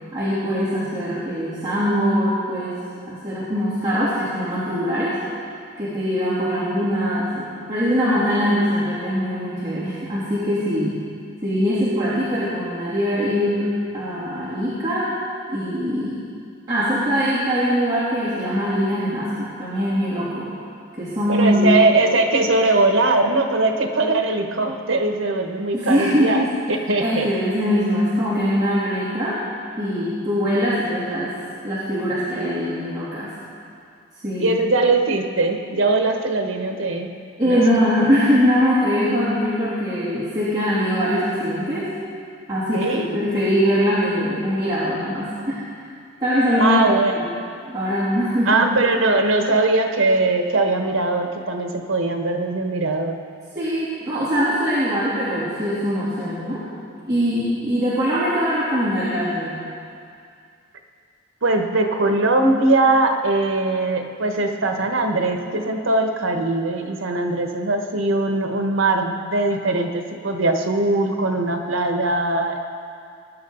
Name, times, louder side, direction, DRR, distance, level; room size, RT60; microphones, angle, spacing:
voice 1, 0.1-2.8 3.1-5.2 5.8-11.0 11.4-13.7 13.9-15.1 15.5-16.2 16.7-20.5 21.0-21.7 25.7-26.5 27.0-29.4 29.8-31.3 31.6-33.3 34.2-34.5 37.4-41.9 42.5-45.6 46.2-46.8 47.1-47.3 47.7-48.6 53.5-56.6 57.1-59.6, equal, 20° right, -13 dB, 3.0 m, -22 dB
voice 2, 21.3-27.3 34.4-37.1 37.4-37.6 42.7-43.2 46.6-47.1 48.5-53.2 61.4-72.6, right 2 dB, 80° right, 4 dB, 1.2 m, -20 dB
20.5 x 10.5 x 3.9 m, 2.3 s
head